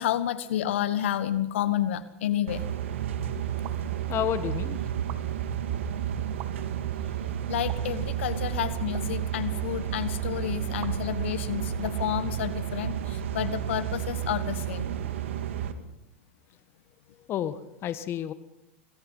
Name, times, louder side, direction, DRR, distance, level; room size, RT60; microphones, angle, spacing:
voice 1, 0.0-2.6 7.5-14.8, left 11 dB, 70° left, 13 dB, 1.3 m, -30 dB
sound 1, 2.5-15.7, right 10 dB, 75° right, 2.0 m, -31 dB
sound 2, 3.6-3.9 4.9-5.2 6.3-6.5 7.7-8.0 8.8-9.1 10.8-10.9 11.8-13.0, right 13 dB, 50° right, 2.0 m, -45 dB
voice 2, 4.1-4.8 17.3-18.3, left 10 dB, 35° left, 13 dB, 1.5 m, -30 dB
26.5 x 20.0 x 5.6 m, 0.88 s
hypercardioid pair, 105°, 7 cm